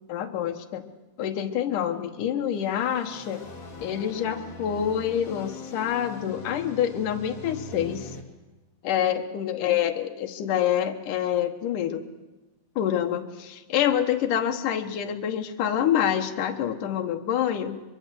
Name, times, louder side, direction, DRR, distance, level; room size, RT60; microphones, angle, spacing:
voice 1, 0.1-0.8 1.2-3.4 3.8-8.1 8.8-12.0 12.8-17.8, left 9 dB, 75° left, 5 dB, 2.8 m, -27 dB
sound 1, 2.5-8.2, left 3 dB, 25° left, 2.5 m, -42 dB
23.5 x 23.5 x 7.7 m, 1.1 s
omnidirectional pair, 3.8 m